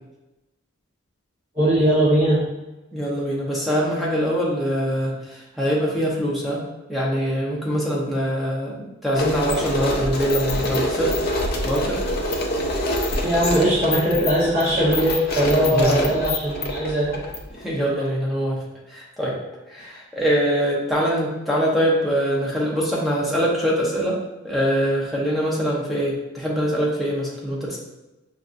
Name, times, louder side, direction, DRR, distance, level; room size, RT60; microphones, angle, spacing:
voice 1, 1.5-2.4 13.2-17.2 19.8-19.9, right 1 dB, 30° right, -10 dB, 0.9 m, -20 dB
voice 2, 2.9-6.6 6.9-11.1 11.6-12.0 15.6-16.1 17.6-18.6 18.9-19.3 19.7-27.8, equal, ahead, -5 dB, 0.7 m, -23 dB
sound 1, 9.1-17.7, left 1 dB, 45° left, 0.5 m, -26 dB
5.6 x 2.5 x 2.5 m, 1.0 s
head